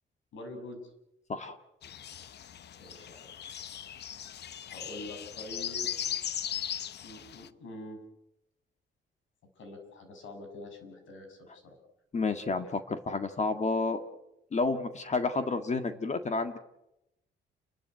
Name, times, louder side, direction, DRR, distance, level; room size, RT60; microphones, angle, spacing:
voice 1, 0.3-0.8 2.8-3.3 4.7-5.9 7.0-8.0 9.5-11.8, left 1 dB, 75° left, 6 dB, 6.6 m, -45 dB
sound 1, 1.8-7.5, left 9 dB, 60° left, 0.9 m, -38 dB
voice 2, 12.1-14.0 14.5-16.6, left 3 dB, 35° left, 8 dB, 1.8 m, -30 dB
29.0 x 12.5 x 9.3 m, 0.87 s
cardioid pair, 90°, 20 cm